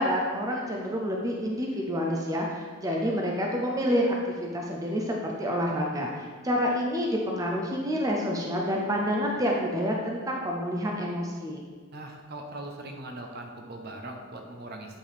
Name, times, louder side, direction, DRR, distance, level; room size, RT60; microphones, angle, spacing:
voice 1, 0.0-11.6, equal, 15° right, -1 dB, 0.6 m, -28 dB
voice 2, 11.9-15.0, right 1 dB, 50° right, 3 dB, 0.8 m, -40 dB
8.8 x 4.6 x 3.5 m, 1.5 s
head